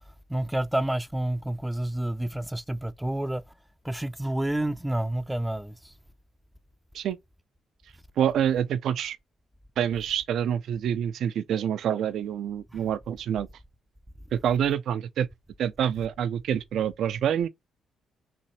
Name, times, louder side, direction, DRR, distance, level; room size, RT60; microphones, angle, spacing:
voice 1, 0.3-3.4 3.8-5.7, right 1 dB, 5° right, 0.5 m, -29 dB
voice 2, 8.2-9.2 9.8-13.5 14.3-15.3 15.6-17.5, right 9 dB, 70° right, 0.5 m, -27 dB
4.3 x 2.8 x 4.1 m
cardioid pair, 90°, 0 cm